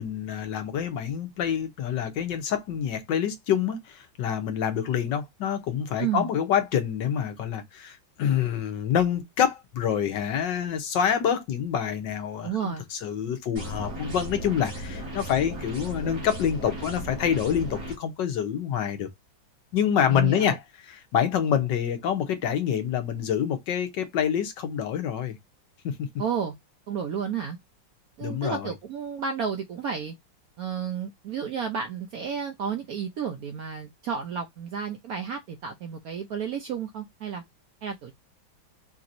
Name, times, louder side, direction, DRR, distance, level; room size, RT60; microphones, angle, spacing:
voice 1, 0.0-19.1 19.7-20.6 20.9-25.4 26.0-26.1 28.2-28.7, left 8 dB, 70° left, 1.5 m, -27 dB
voice 2, 6.0-6.3 12.4-12.8 20.1-20.6 26.2-26.5 26.9-27.6 28.2-30.1 30.6-37.4 37.8-38.1, right 7 dB, 70° right, 0.8 m, -32 dB
sound 1, 13.6-18.0, right 1 dB, 90° right, 3.4 m, -36 dB
6.0 x 2.8 x 2.6 m
omnidirectional pair, 2.1 m